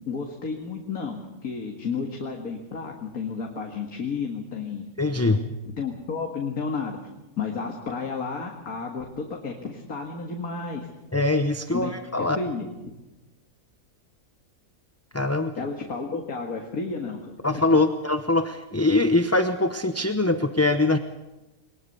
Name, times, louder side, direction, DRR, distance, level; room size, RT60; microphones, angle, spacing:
voice 1, 0.1-4.9 5.8-7.0 7.4-10.9 11.7-12.9 15.6-17.6, left 4 dB, 85° left, 1 dB, 2.4 m, -32 dB
voice 2, 5.0-5.5 11.1-12.4 15.1-15.5 17.4-21.0, left 2 dB, 15° left, 8 dB, 0.6 m, -23 dB
22.0 x 20.5 x 6.9 m, 1.0 s
omnidirectional pair, 1.5 m